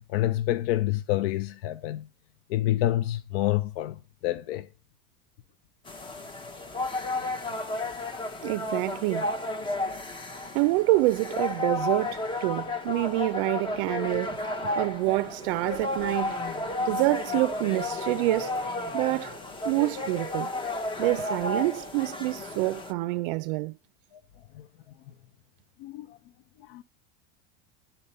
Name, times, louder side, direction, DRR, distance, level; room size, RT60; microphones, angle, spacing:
voice 1, 0.0-2.1 2.5-4.7 24.5-24.7 25.8-26.2 26.7-26.8, left 14 dB, 80° left, 0.6 m, -28 dB
sound 1, 5.9-22.9, left 2 dB, 15° left, 0.7 m, -32 dB
voice 2, 8.4-9.3 10.5-16.4 16.8-19.4 19.6-20.5 21.0-23.7, right 20 dB, 65° right, 0.4 m, -27 dB
10.0 x 4.2 x 5.3 m
supercardioid pair, 135°, 30 cm